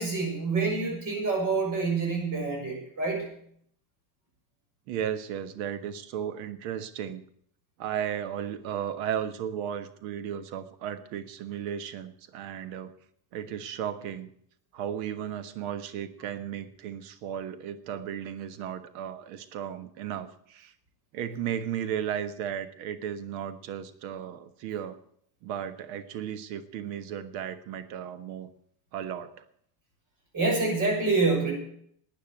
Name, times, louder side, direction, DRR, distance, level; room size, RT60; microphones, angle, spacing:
voice 1, 0.0-3.3 30.3-31.5, right 3 dB, 40° right, 2 dB, 6.8 m, -27 dB
voice 2, 4.9-7.2 7.8-12.9 13.3-14.3 14.7-20.7 21.1-25.0 25.4-28.5 28.9-29.3, right 9 dB, 85° right, 12 dB, 1.5 m, -35 dB
12.0 x 9.3 x 9.0 m, 0.67 s
cardioid pair, 135°, 50 cm